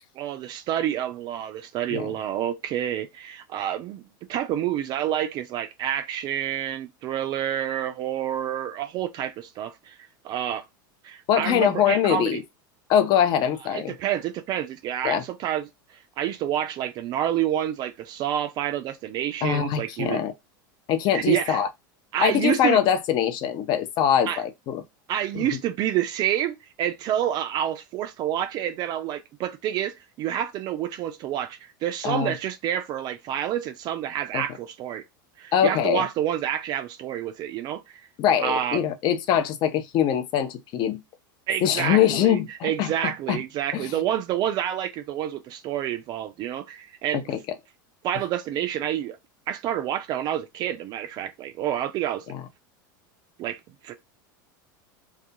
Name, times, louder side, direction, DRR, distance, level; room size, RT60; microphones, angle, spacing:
voice 1, 0.2-4.0 4.3-10.0 10.2-10.6 11.0-12.4 13.7-15.7 16.2-20.2 21.1-21.6 22.1-22.8 24.3-24.4 25.1-35.0 35.4-38.1 38.4-38.8 41.5-47.2 48.0-49.2 49.5-52.2 53.4-53.9, right 11 dB, 40° right, 0.4 m, -28 dB
voice 2, 11.3-12.4 12.9-13.9 15.0-15.2 19.4-20.3 20.9-21.7 22.2-24.8 25.3-25.6 32.0-32.3 34.3-34.5 35.5-36.0 38.2-41.0 41.6-42.9 43.3-43.4 43.7-43.9 47.1-47.4 52.3-52.4, left 9 dB, 40° left, 0.5 m, -23 dB
2.4 x 2.2 x 2.7 m
supercardioid pair, 135°, 11 cm